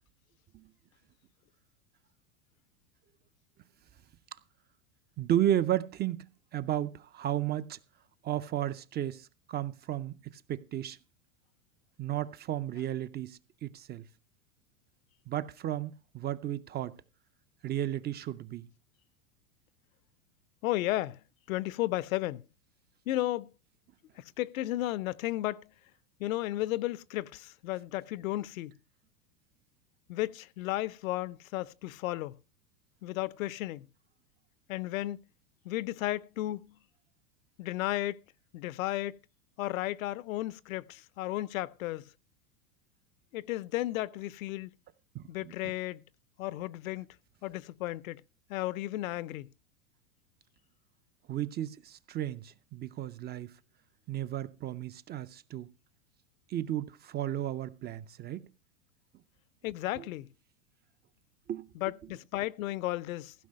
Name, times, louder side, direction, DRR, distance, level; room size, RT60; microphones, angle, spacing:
voice 1, 5.2-7.8 8.2-11.0 12.0-14.0 15.3-16.9 17.6-18.7 45.1-45.5 51.3-53.5 54.1-55.7 56.5-58.5 60.0-60.1 61.5-61.7, right 12 dB, 25° right, 0.5 m, -33 dB
voice 2, 20.6-21.2 21.5-22.4 23.1-23.5 24.4-25.6 26.2-28.8 30.1-32.4 33.0-33.9 34.7-35.2 35.7-36.7 37.6-38.2 38.5-39.2 39.6-42.1 43.3-44.7 45.3-46.0 46.4-47.1 47.4-48.2 48.5-49.5 59.6-60.3 61.8-63.3, left 16 dB, 70° left, 0.7 m, -34 dB
15.5 x 5.4 x 6.4 m
hypercardioid pair, 115°, 42 cm